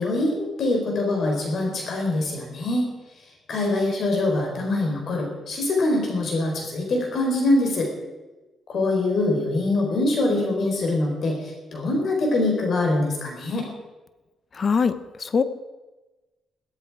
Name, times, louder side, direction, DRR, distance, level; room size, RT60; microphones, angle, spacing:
voice 1, 0.0-2.9 3.5-7.9 8.7-13.7, left 2 dB, 60° left, 1 dB, 4.2 m, -24 dB
voice 2, 14.5-15.4, left 5 dB, 40° left, 13 dB, 1.0 m, -22 dB
16.5 x 13.5 x 4.8 m, 1.1 s
cardioid pair, 90°, 0 cm